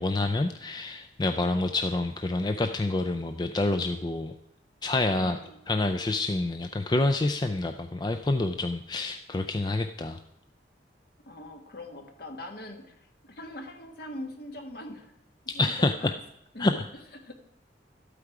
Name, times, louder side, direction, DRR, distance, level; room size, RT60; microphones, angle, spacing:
voice 1, 0.0-4.3 4.8-5.4 5.7-10.2 15.5-16.1 16.6-16.8, left 2 dB, 25° left, 7 dB, 0.4 m, -27 dB
voice 2, 5.2-5.6 11.3-15.1 15.4-16.2 16.5-16.7 17.1-17.3, left 1 dB, 55° left, 5 dB, 1.5 m, -42 dB
12.5 x 8.4 x 4.9 m, 0.80 s
head